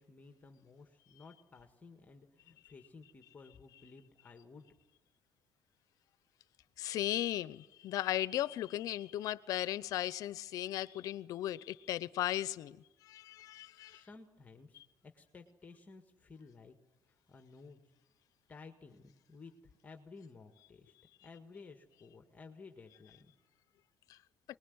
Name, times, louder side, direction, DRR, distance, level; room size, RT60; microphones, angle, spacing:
voice 1, 0.0-4.7 13.5-13.6 13.9-16.8 17.1-17.8 18.5-21.0 21.2-23.3, left 4 dB, 25° left, 1.8 m, -55 dB
voice 2, 6.8-14.0 24.1-24.2, left 13 dB, 70° left, 0.8 m, -36 dB
23.5 x 20.5 x 9.6 m
cardioid pair, 125°, 6 cm